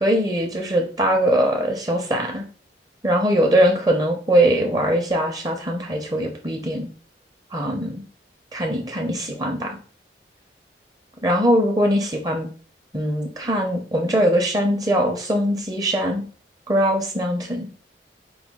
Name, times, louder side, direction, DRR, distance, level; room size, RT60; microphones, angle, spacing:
voice 1, 0.0-2.4 3.0-6.9 7.5-8.0 8.5-9.8 11.2-12.5 12.9-16.2 16.7-17.7, equal, 20° right, 2 dB, 0.6 m, -21 dB
4.8 x 2.2 x 3.5 m, 0.41 s
head